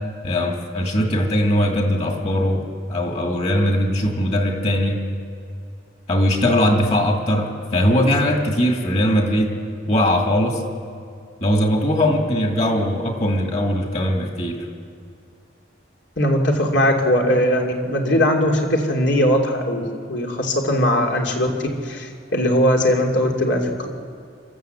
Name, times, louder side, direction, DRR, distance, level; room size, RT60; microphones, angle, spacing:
voice 1, 0.2-5.0 6.1-9.6 9.9-10.6 11.4-14.7, equal, 40° left, 2 dB, 2.5 m, -20 dB
voice 2, 16.2-23.9, equal, 80° left, 1 dB, 2.9 m, -20 dB
26.5 x 13.0 x 8.0 m, 2.4 s
head